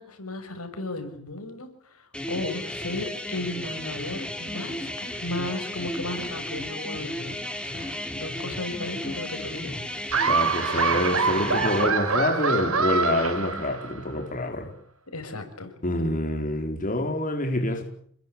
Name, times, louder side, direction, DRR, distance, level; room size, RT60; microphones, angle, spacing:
voice 1, 0.0-10.0 15.1-15.7, left 2 dB, 80° left, 7 dB, 6.9 m, -35 dB
sound 1, 2.1-11.9, left 1 dB, 5° left, 4.6 m, -34 dB
Laughter, 10.1-14.1, right 5 dB, 70° right, 4.0 m, -25 dB
voice 2, 10.3-14.7 15.8-17.8, left 1 dB, 40° left, 3 dB, 4.5 m, -27 dB
28.5 x 22.0 x 8.7 m, 0.63 s
head